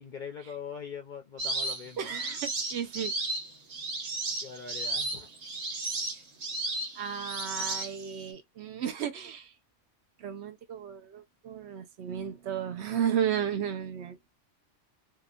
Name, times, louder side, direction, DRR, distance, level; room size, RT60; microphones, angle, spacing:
voice 1, 0.0-2.1 4.1-5.3, left 7 dB, 60° left, 0.5 m, -42 dB
sound 1, 1.4-8.3, right 2 dB, 90° right, 1.3 m, -34 dB
voice 2, 2.0-3.1 7.0-9.5 10.2-14.2, right 8 dB, 70° right, 0.8 m, -33 dB
2.8 x 2.3 x 2.4 m
omnidirectional pair, 1.3 m